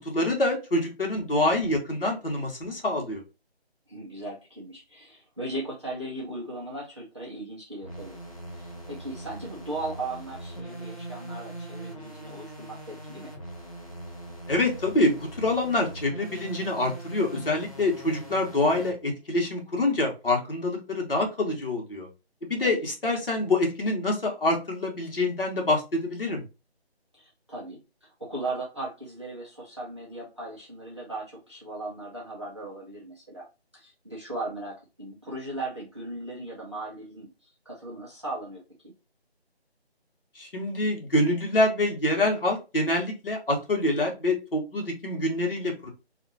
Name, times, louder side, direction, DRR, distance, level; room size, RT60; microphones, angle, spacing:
voice 1, 0.0-3.2 14.5-22.1 22.5-26.4 40.4-45.9, left 2 dB, 60° left, 1 dB, 1.4 m, -26 dB
voice 2, 3.9-8.2 8.6-13.3 22.6-22.8 27.1-33.5 33.7-38.9, right 2 dB, 25° right, -4 dB, 0.7 m, -37 dB
sound 1, 7.8-18.9, right 1 dB, 35° left, 0.6 m, -41 dB
2.8 x 2.6 x 3.8 m, 0.28 s
figure-of-eight pair, 175°, 32 cm